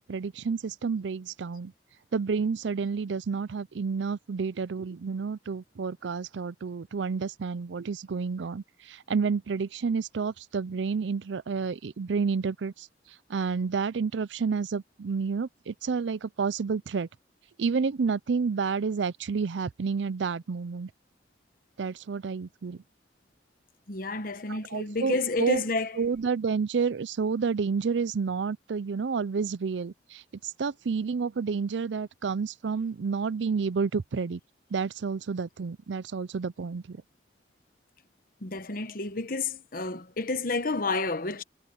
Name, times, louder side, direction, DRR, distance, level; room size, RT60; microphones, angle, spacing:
voice 1, 0.1-1.7 2.1-12.9 13.3-17.1 17.6-20.9 21.8-22.8 24.5-25.6 26.0-34.4 34.7-37.0, right 5 dB, 85° right, 0.5 m, -30 dB
voice 2, 23.9-26.0 38.4-41.4, left 3 dB, 50° left, 1.2 m, -30 dB
head